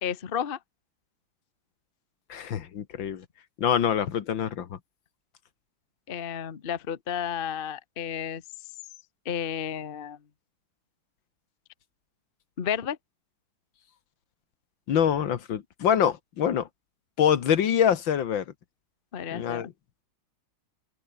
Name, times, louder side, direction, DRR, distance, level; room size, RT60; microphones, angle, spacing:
voice 1, 0.0-0.6 6.1-8.4 9.2-10.2 12.6-13.0 19.1-19.7, left 8 dB, 40° left, 0.8 m, -32 dB
voice 2, 2.3-3.3 3.6-4.8 14.9-16.7 17.2-18.5 19.3-19.7, left 8 dB, 65° left, 2.0 m, -25 dB
open air
omnidirectional pair, 2.3 m